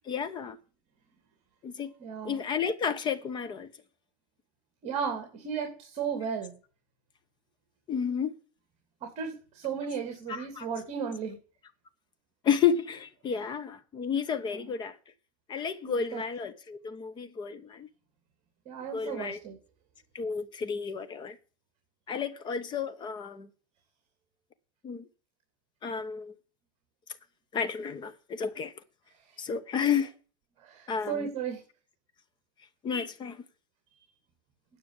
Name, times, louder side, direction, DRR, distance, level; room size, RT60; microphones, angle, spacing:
voice 1, 0.1-0.6 1.6-1.9 2.2-3.7 7.9-8.3 10.3-10.7 12.4-15.0 15.5-17.9 18.9-19.4 20.1-21.4 22.1-23.5 24.8-25.1 25.8-26.3 27.5-28.7 29.4-30.1 30.9-31.3 32.8-33.4, left 7 dB, 25° left, 1.0 m, -31 dB
voice 2, 2.0-2.4 4.8-6.5 9.0-11.4 14.4-14.7 15.8-16.2 18.7-19.6 30.6-31.6, right 7 dB, 35° right, 2.8 m, -35 dB
9.8 x 6.3 x 8.2 m
supercardioid pair, 155°, 20 cm